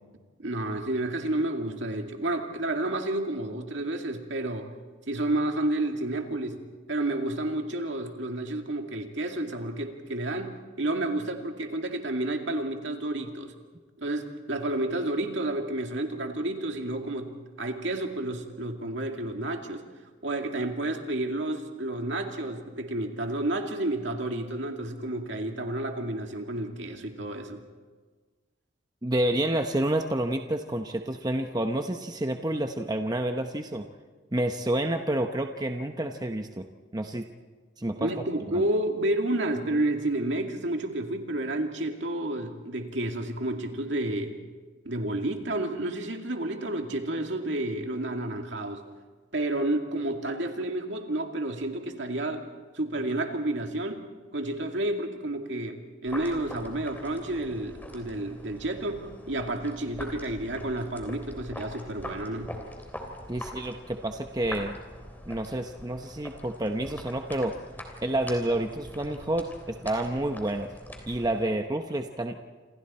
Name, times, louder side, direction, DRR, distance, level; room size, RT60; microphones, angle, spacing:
voice 1, 0.4-4.7 5.1-6.6 6.9-13.5 14.0-19.8 20.2-27.6 38.0-44.4 44.8-48.8 49.3-52.5 52.7-54.0 54.3-62.5, right 1 dB, 65° right, 3 dB, 2.3 m, -30 dB
voice 2, 29.0-33.9 34.3-36.7 36.9-37.3 37.8-38.1 38.5-38.6 63.3-64.8 65.3-67.5 68.0-70.7 71.1-72.4, right 1 dB, 20° right, 5 dB, 0.8 m, -29 dB
sound 1, 56.1-71.4, left 1 dB, 10° left, 3.2 m, -43 dB
27.5 x 27.5 x 4.4 m, 1.4 s
head